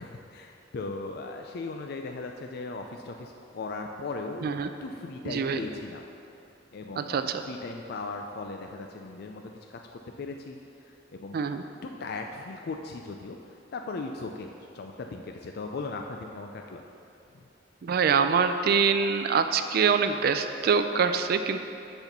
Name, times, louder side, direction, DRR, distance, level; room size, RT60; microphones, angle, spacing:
voice 1, 0.0-4.5 4.8-6.0 6.7-10.6 10.8-11.4 11.8-16.8, left 3 dB, 55° left, 3 dB, 0.4 m, -38 dB
voice 2, 5.2-5.6 7.0-7.4 11.3-11.6 17.8-21.6, right 6 dB, 55° right, 8 dB, 0.3 m, -25 dB
8.2 x 4.4 x 6.6 m, 2.7 s
head